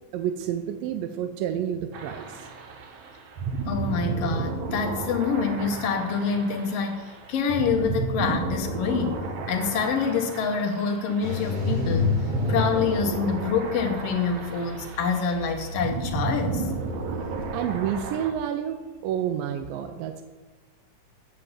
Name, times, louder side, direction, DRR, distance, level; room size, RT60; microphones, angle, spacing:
voice 1, 0.1-2.5 17.5-20.2, right 9 dB, 85° right, 7 dB, 2.3 m, -29 dB
sound 1, 1.9-18.3, right 4 dB, 65° right, 2.0 m, -33 dB
voice 2, 3.7-12.1 12.5-16.7, left 5 dB, 70° left, 5 dB, 1.6 m, -26 dB
sound 2, 11.2-18.1, left 4 dB, 45° right, 3.1 m, -32 dB
7.8 x 7.6 x 8.0 m, 1.3 s
omnidirectional pair, 3.9 m